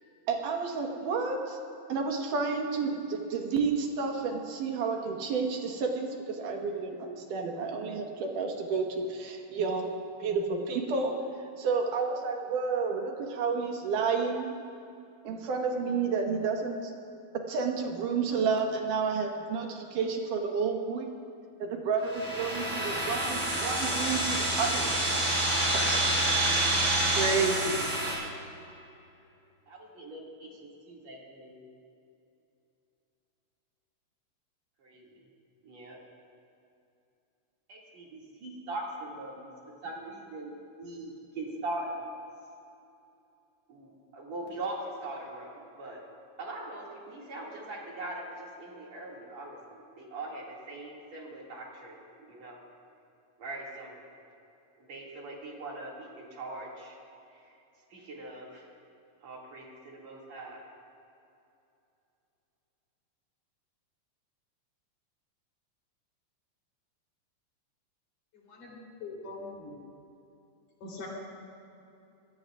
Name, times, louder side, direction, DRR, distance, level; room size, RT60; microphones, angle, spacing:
voice 1, 0.3-1.6 1.9-9.9 10.2-14.5 15.2-16.9 17.5-21.1 21.6-25.0 25.7-26.0 27.1-27.8, right 5 dB, 80° right, 2 dB, 2.9 m, -30 dB
sound 1, 22.0-28.1, right 1 dB, 40° right, 4.3 m, -28 dB
voice 2, 29.7-31.6 34.8-35.2 35.6-36.0 37.7-40.5 40.8-42.0 43.7-46.1 46.4-52.6 53.4-54.1 54.8-57.0 57.3-57.4 57.9-58.7 59.2-60.6, right 2 dB, 55° right, -3 dB, 3.4 m, -41 dB
voice 3, 68.5-69.8 70.8-71.1, left 3 dB, 85° left, -4 dB, 5.2 m, -42 dB
25.5 x 17.0 x 2.4 m, 2.7 s
omnidirectional pair, 3.7 m